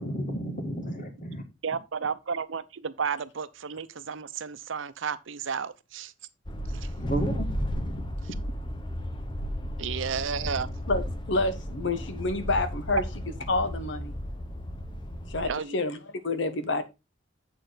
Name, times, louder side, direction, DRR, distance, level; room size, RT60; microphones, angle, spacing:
voice 1, 0.0-1.4 7.0-8.4, right 1 dB, 45° left, 1.9 m, -33 dB
voice 2, 1.6-6.1 6.7-6.9 9.8-10.7 15.4-15.8, right 6 dB, 85° right, 0.7 m, -32 dB
sound 1, 6.5-15.5, equal, 25° left, 1.0 m, -34 dB
voice 3, 11.3-13.0 13.5-14.1 15.3-16.0 16.2-16.8, left 2 dB, 70° left, 1.2 m, -28 dB
7.8 x 6.7 x 3.9 m
head